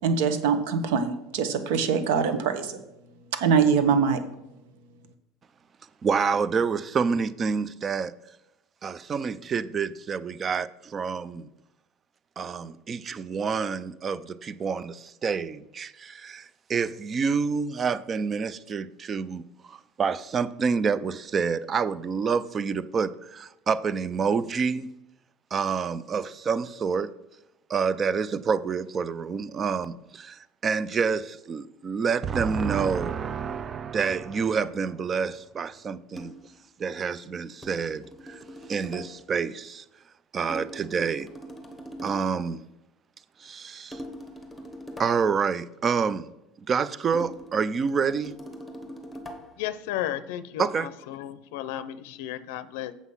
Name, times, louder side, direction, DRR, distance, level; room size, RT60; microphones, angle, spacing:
voice 1, 0.0-2.8 3.3-4.2, right 6 dB, 70° right, 1.2 m, -23 dB
voice 2, 6.0-8.1 8.8-11.5 12.4-24.9 25.5-27.1 27.7-36.3 36.8-38.4 38.7-39.8 40.3-41.3 42.0-42.7 43.4-44.0 45.0-46.3 46.6-48.3 50.6-50.9, right 5 dB, 20° right, 0.4 m, -28 dB
sound 1, 36.1-36.5 37.6-39.3 40.5-42.4 43.9-45.4 47.1-49.7, equal, 5° left, 1.0 m, -42 dB
voice 3, 49.6-52.9, left 12 dB, 75° left, 0.5 m, -34 dB
8.1 x 7.1 x 5.6 m
cardioid pair, 170°, 0 cm